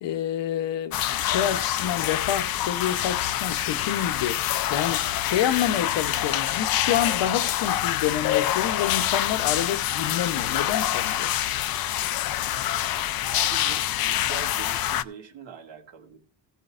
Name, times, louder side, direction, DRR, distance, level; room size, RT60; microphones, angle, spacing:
voice 1, 0.0-4.4 4.7-11.3, left 10 dB, 75° left, 0.9 m, -28 dB
sound 1, 0.9-15.0, left 12 dB, 55° left, 0.5 m, -26 dB
voice 2, 13.3-16.2, right 7 dB, 85° right, 1.7 m, -42 dB
15.5 x 9.3 x 2.5 m
cardioid pair, 125°, 44 cm